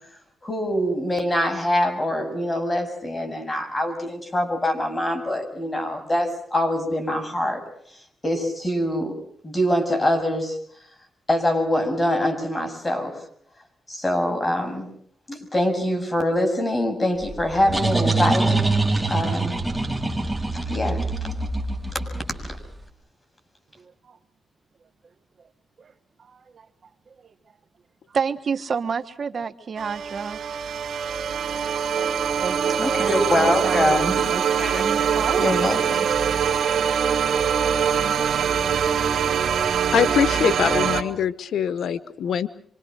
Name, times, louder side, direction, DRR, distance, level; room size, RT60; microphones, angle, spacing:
voice 1, 0.4-7.6 7.9-9.2 9.4-10.6 11.3-13.2 13.9-14.9 15.3-18.8 19.1-19.6 20.5-21.0 21.9-22.0 32.8-34.3 34.6-34.7 35.4-36.1, left 1 dB, 20° left, 6 dB, 7.3 m, -24 dB
sound 1, 17.2-22.7, right 3 dB, 5° right, 4.7 m, -24 dB
voice 2, 26.2-26.7 27.2-27.3 28.1-30.4 32.4-32.6 32.8-35.5 38.0-38.4, right 6 dB, 50° right, 10 dB, 1.3 m, -31 dB
sound 2, 29.8-41.0, right 7 dB, 75° right, 2.3 m, -23 dB
voice 3, 39.9-42.5, left 8 dB, 80° left, 14 dB, 1.0 m, -23 dB
26.0 x 25.5 x 6.4 m, 0.63 s
cardioid pair, 105°, 0 cm